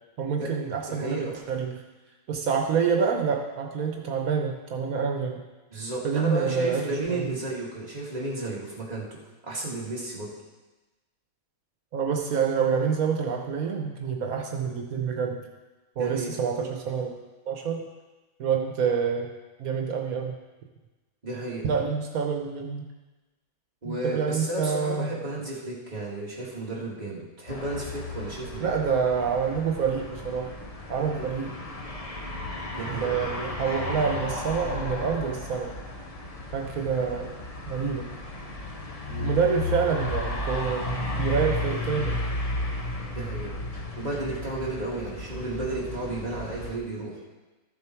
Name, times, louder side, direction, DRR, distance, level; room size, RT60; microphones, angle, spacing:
voice 1, 0.2-1.8 2.3-5.4 6.0-7.3 11.9-15.4 16.0-17.1 17.5-17.8 18.4-19.3 19.6-20.3 21.6-22.9 23.8-25.1 28.6-30.5 30.9-31.5 32.9-35.7 36.5-37.3 37.6-38.1 39.2-42.2, right 6 dB, 80° right, 2 dB, 1.4 m, -27 dB
voice 2, 0.8-1.3 5.7-9.1 9.4-10.3 16.0-16.3 21.2-21.7 23.8-28.7 31.1-31.3 32.7-33.1 39.0-39.3 43.1-43.5 44.0-47.2, right 2 dB, 30° right, -5 dB, 2.2 m, -33 dB
sound 1, 27.5-46.8, left 2 dB, 30° left, 0.9 m, -34 dB
13.5 x 7.3 x 4.5 m, 1.2 s
omnidirectional pair, 1.5 m